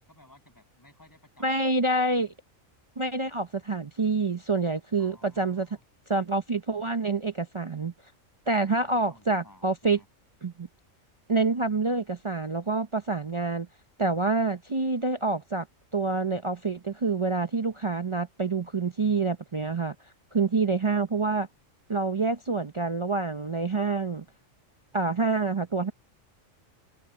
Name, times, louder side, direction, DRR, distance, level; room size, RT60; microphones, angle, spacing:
voice 1, 0.1-1.7 5.0-5.8 8.5-10.1, left 1 dB, 15° left, 8.0 m, -56 dB
voice 2, 1.4-2.3 3.0-5.7 6.1-7.9 8.5-10.0 10.4-10.7 11.3-13.7 14.0-15.7 15.9-19.9 20.3-21.5 21.9-24.2 24.9-25.9, right 3 dB, 35° right, 0.5 m, -27 dB
omnidirectional pair, 1.4 m